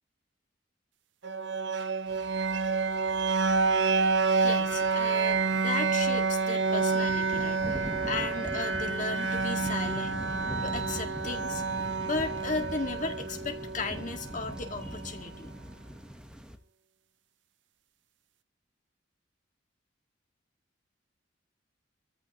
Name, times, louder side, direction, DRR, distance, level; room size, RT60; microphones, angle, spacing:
sound 1, 1.2-15.2, right 4 dB, 70° right, 0.8 m, -29 dB
sound 2, 2.1-16.6, equal, 5° right, 1.2 m, -43 dB
voice 1, 4.4-11.6 12.0-15.5, left 3 dB, 40° left, 4 dB, 2.0 m, -36 dB
26.0 x 14.5 x 3.0 m, 0.41 s
head